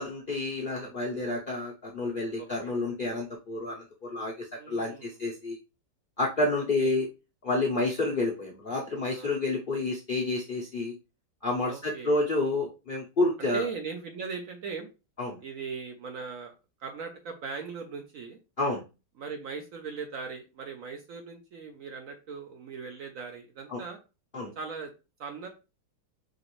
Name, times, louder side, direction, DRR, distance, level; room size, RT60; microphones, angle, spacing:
voice 1, 0.0-5.6 6.2-7.1 7.4-10.9 11.4-13.6 15.2-15.4 18.6-18.8 23.7-23.8 24.3-24.5, left 2 dB, 50° left, -2 dB, 0.6 m, -29 dB
voice 2, 2.4-2.7 4.6-5.2 6.6-6.9 9.0-9.3 11.7-12.2 13.4-14.9 15.4-16.5 16.8-18.4 19.2-24.0 24.6-24.9 25.2-25.5, right 5 dB, 60° right, 4 dB, 0.9 m, -39 dB
5.0 x 3.0 x 3.0 m, 0.29 s
omnidirectional pair, 1.9 m